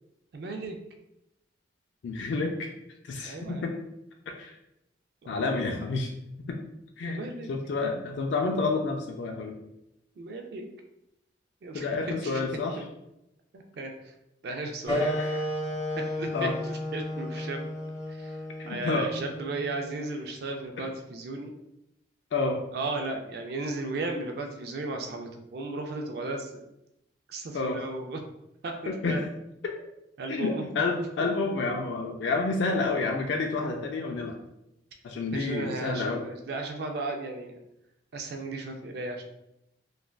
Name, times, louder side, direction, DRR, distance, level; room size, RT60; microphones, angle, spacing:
voice 1, 0.3-0.8 3.2-3.8 5.2-5.6 7.1-7.5 10.2-10.7 11.6-11.9 12.2-12.4 12.8-12.9 13.5-13.9 14.4-15.2 16.2-17.6 18.1-18.4 18.7-21.5 22.7-26.6 27.3-28.2 28.6-29.3 30.2-30.6 31.2-31.3 35.3-37.6 38.1-39.3, right 2 dB, 60° right, 3 dB, 0.3 m, -35 dB
voice 2, 2.0-2.7 3.0-3.7 4.4-4.6 5.3-6.1 6.5-6.6 7.0-7.2 7.5-9.6 11.7-12.8 14.9-15.4 16.3-16.5 18.6-19.1 20.8-20.9 22.3-22.6 27.5-27.8 28.9-29.2 30.3-34.4 35.0-36.2, left 3 dB, 85° left, 2 dB, 0.3 m, -29 dB
sound 1, 14.9-20.0, left 1 dB, 20° left, 1.4 m, -33 dB
3.2 x 2.4 x 2.2 m, 0.85 s
head